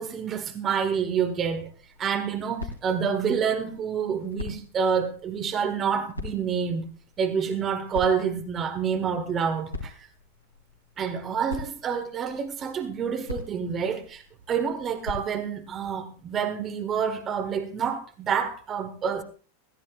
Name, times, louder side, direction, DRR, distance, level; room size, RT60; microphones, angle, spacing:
voice 1, 0.0-1.7 2.0-6.9 7.2-9.9 11.0-14.2 14.5-19.2, right 7 dB, 25° right, 1.6 m, -28 dB
sound 1, 1.4-15.9, left 2 dB, 90° left, 3.4 m, -43 dB
16.0 x 15.5 x 2.5 m
figure-of-eight pair, 90°, 0 cm